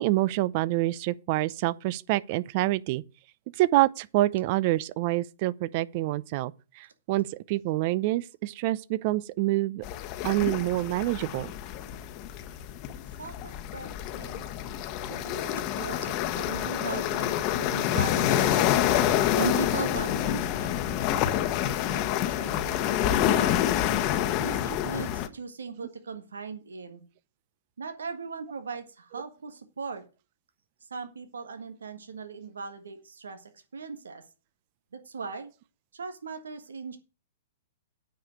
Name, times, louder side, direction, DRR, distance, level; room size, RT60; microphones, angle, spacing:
voice 1, 0.0-3.0 3.6-9.8 10.2-11.5, right 17 dB, 45° right, 0.6 m, -27 dB
sound 1, 9.8-25.3, left 11 dB, 40° left, 1.2 m, -27 dB
voice 2, 13.2-14.5 15.1-21.0 21.5-23.6 24.4-27.0 27.8-30.1 30.8-34.2 34.9-35.5 35.9-37.0, right 5 dB, 90° right, 1.7 m, -39 dB
9.3 x 5.0 x 7.9 m
hypercardioid pair, 130°, 0 cm